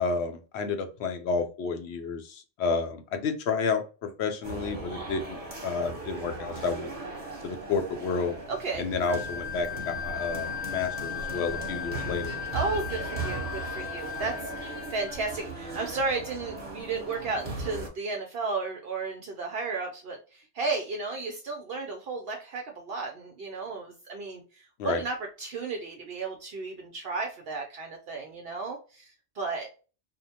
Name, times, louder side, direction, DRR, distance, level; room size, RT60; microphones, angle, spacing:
voice 1, 0.0-6.9 7.4-8.4 8.8-12.3 24.8-25.0, left 5 dB, 70° left, 6 dB, 0.9 m, -30 dB
sound 1, 4.4-17.9, right 3 dB, 35° right, 1.0 m, -38 dB
voice 2, 8.5-8.8 12.5-29.7, right 3 dB, 65° right, 2 dB, 0.8 m, -34 dB
Wind instrument woodwind instrument, 9.0-15.2, left 9 dB, 10° left, 0.6 m, -37 dB
2.7 x 2.1 x 2.7 m, 0.34 s
omnidirectional pair, 1.2 m